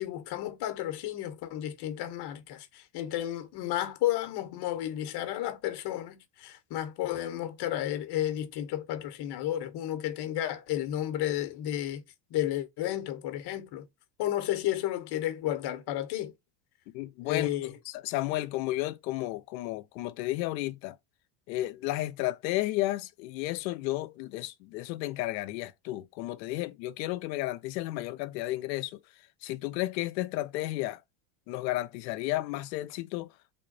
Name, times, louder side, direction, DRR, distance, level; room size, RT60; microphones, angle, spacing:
voice 1, 0.0-12.0 12.3-13.9 14.2-16.3 17.2-17.8, left 12 dB, 50° left, 0.9 m, -32 dB
voice 2, 16.9-17.5 17.9-21.0 21.5-29.0 29.4-31.0 31.5-33.3, left 17 dB, 90° left, 0.6 m, -33 dB
3.5 x 2.2 x 3.8 m
supercardioid pair, 110°, 50 cm